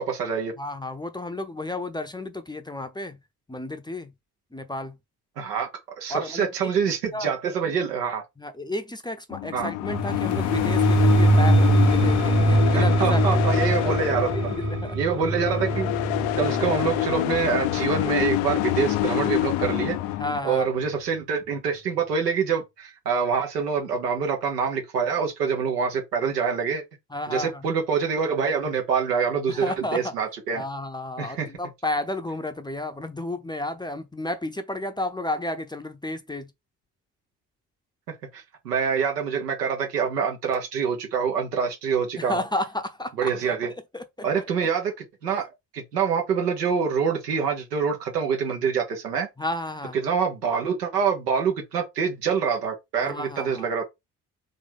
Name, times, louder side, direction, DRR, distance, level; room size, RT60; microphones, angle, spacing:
voice 1, 0.0-0.5 5.4-5.7 5.9-8.2 9.5-9.7 12.7-14.3 14.9-15.9 16.4-20.0 20.4-26.8 27.3-30.6 31.2-31.5 38.3-42.4 43.2-43.7 44.2-44.9 45.2-45.5 45.7-49.3 50.0-53.8, right 6 dB, 80° right, 1.2 m, -25 dB
voice 2, 0.6-3.2 3.5-4.1 4.5-5.0 6.1-6.7 7.1-7.3 8.4-13.4 14.3-15.0 20.2-20.7 27.1-27.6 29.5-30.1 30.5-36.5 42.2-43.3 43.7-44.5 49.4-50.0 53.0-53.7, left 1 dB, 10° left, 0.7 m, -32 dB
sound 1, 9.3-20.4, left 15 dB, 60° left, 0.6 m, -26 dB
sound 2, 9.9-19.7, right 2 dB, 25° right, 1.0 m, -23 dB
3.9 x 3.2 x 3.9 m
figure-of-eight pair, 45°, 48 cm